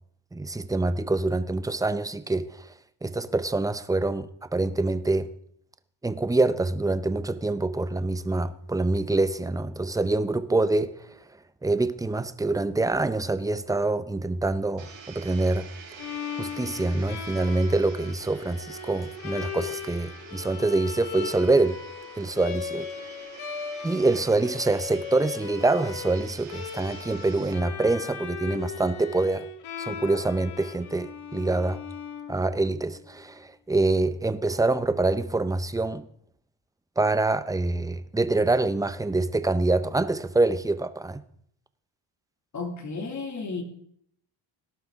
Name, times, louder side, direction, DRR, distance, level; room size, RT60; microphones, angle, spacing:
voice 1, 0.3-2.7 3.0-5.3 6.0-11.2 11.6-15.7 16.4-21.8 22.1-22.9 23.8-29.5 29.8-31.8 32.3-36.1 37.0-41.2, right 2 dB, 10° right, 0.5 m, -25 dB
Domestic sounds home sounds, 14.8-27.5, right 6 dB, 65° right, 4.2 m, -47 dB
Bowed string instrument, 16.0-32.9, left 7 dB, 85° left, 1.9 m, -38 dB
voice 2, 42.5-43.6, left 4 dB, 35° left, 2.4 m, -33 dB
18.0 x 11.5 x 3.6 m
cardioid pair, 105°, 48 cm